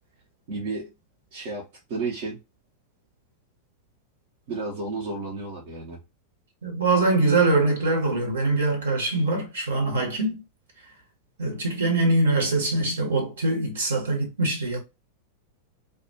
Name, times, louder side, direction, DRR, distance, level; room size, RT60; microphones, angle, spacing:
voice 1, 0.5-0.9 1.3-1.6 1.9-2.4 4.5-6.0, right 3 dB, 50° right, 0.8 m, -32 dB
voice 2, 6.6-10.4 11.4-14.8, right 2 dB, 65° right, 1.1 m, -23 dB
2.5 x 2.3 x 2.6 m
figure-of-eight pair, 90°, 0 cm